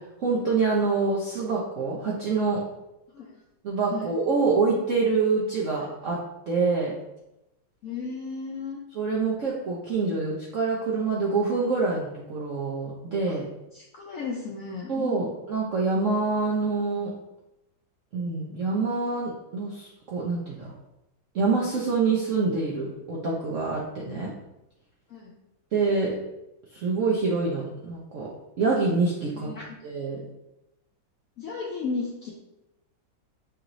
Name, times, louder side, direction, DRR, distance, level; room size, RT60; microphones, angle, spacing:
voice 1, 0.2-2.6 3.6-6.2 6.5-6.9 8.9-13.4 14.9-17.1 18.1-20.7 21.3-24.3 25.7-26.1 26.7-28.3 28.6-29.5 29.8-30.2, right 4 dB, 70° right, -4 dB, 0.7 m, -26 dB
voice 2, 7.8-8.8 13.3-13.4 13.7-15.3 25.1-25.3 29.3-29.6 31.4-32.3, left 4 dB, 80° left, -3 dB, 0.7 m, -34 dB
5.5 x 3.0 x 2.6 m, 0.91 s
omnidirectional pair, 2.1 m